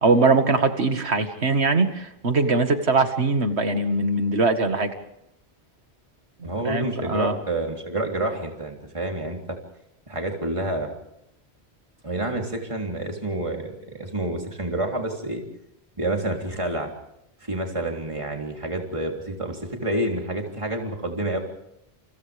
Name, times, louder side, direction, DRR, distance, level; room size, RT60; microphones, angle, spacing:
voice 1, 0.0-4.9 6.4-7.4, right 3 dB, 80° right, 7 dB, 2.1 m, -22 dB
voice 2, 6.4-9.4 10.1-10.9 12.0-15.4 16.0-16.9 17.4-21.4, right 1 dB, 30° right, 1 dB, 3.5 m, -28 dB
29.5 x 29.0 x 3.5 m, 0.79 s
omnidirectional pair, 1.1 m